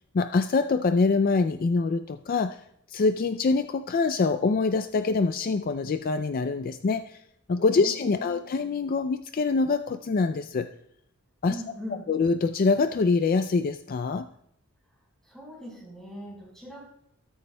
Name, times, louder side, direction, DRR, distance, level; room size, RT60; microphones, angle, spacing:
voice 1, 0.1-2.6 2.9-7.2 7.5-10.7 11.4-11.6 12.1-14.3, left 4 dB, 45° left, 10 dB, 0.3 m, -25 dB
voice 2, 7.8-8.4 11.4-12.1 15.2-16.8, equal, 5° left, -2 dB, 4.7 m, -41 dB
14.0 x 13.5 x 2.2 m, 0.75 s
head